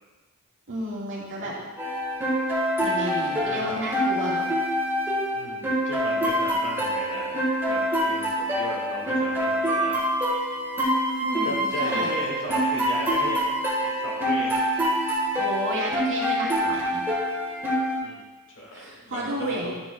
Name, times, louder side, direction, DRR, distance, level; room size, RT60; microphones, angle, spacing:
voice 1, 0.7-1.6 2.8-4.5 11.2-12.1 15.0-17.1 18.7-19.7, equal, 60° right, -5 dB, 1.9 m, -32 dB
sound 1, 1.8-18.0, equal, 10° right, 1.7 m, -26 dB
voice 2, 3.4-3.8 5.3-7.4 7.6-10.0 11.4-13.4 13.8-14.6 18.0-18.2 18.6-19.7, equal, 60° left, -3 dB, 2.1 m, -36 dB
9.6 x 7.3 x 2.4 m, 1.2 s
head